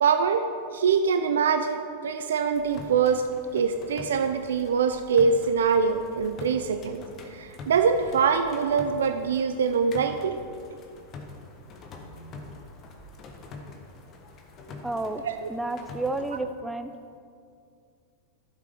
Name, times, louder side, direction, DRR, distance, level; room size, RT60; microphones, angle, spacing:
voice 1, 0.0-0.4 0.7-3.2 3.5-7.0 7.3-10.4 15.2-15.5, right 6 dB, 65° right, 8 dB, 0.5 m, -24 dB
sound 1, 2.5-16.4, left 3 dB, 30° left, 1.3 m, -45 dB
voice 2, 14.8-15.2 15.5-16.9, right 2 dB, 5° right, 8 dB, 0.6 m, -31 dB
12.5 x 7.6 x 5.1 m, 2.4 s
figure-of-eight pair, 90°, 0 cm